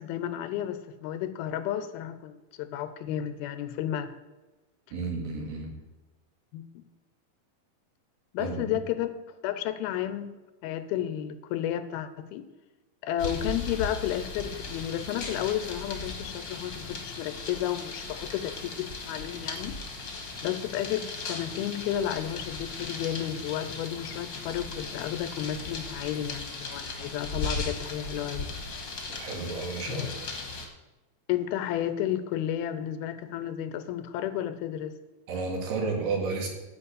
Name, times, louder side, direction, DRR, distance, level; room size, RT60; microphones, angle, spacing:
voice 1, 0.0-4.1 6.5-6.8 8.3-9.1 9.4-10.3 10.6-12.5 13.0-19.8 20.4-28.5 29.9-30.1 31.3-34.9, left 11 dB, 80° left, 11 dB, 2.4 m, -32 dB
voice 2, 4.9-5.8 8.4-8.8 29.2-30.1 35.3-36.5, right 4 dB, 80° right, 1 dB, 4.1 m, -32 dB
sound 1, 13.2-30.7, left 3 dB, 50° left, 1.4 m, -37 dB
11.0 x 5.2 x 8.4 m, 1.1 s
omnidirectional pair, 4.5 m